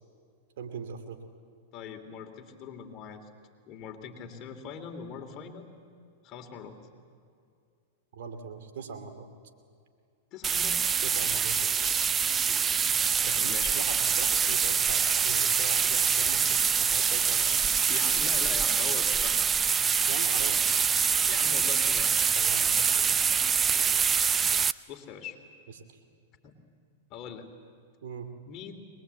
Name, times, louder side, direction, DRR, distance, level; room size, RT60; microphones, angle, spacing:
voice 1, 0.6-1.2 8.1-9.3 11.0-11.9 13.2-17.6 20.1-20.6 22.4-23.1 25.7-25.8 28.0-28.3, right 5 dB, 70° right, 7 dB, 2.5 m, -41 dB
voice 2, 1.7-3.3 3.7-5.7 6.2-6.7 10.3-10.9 13.2-13.8 17.9-19.4 21.3-22.2 24.9-25.4 26.4-26.6 27.1-27.5 28.4-28.8, left 7 dB, 40° left, 4 dB, 3.1 m, -42 dB
sound 1, 10.4-24.7, right 6 dB, 20° right, 0.5 m, -25 dB
23.0 x 21.0 x 8.3 m, 2.3 s
hypercardioid pair, 110°, 0 cm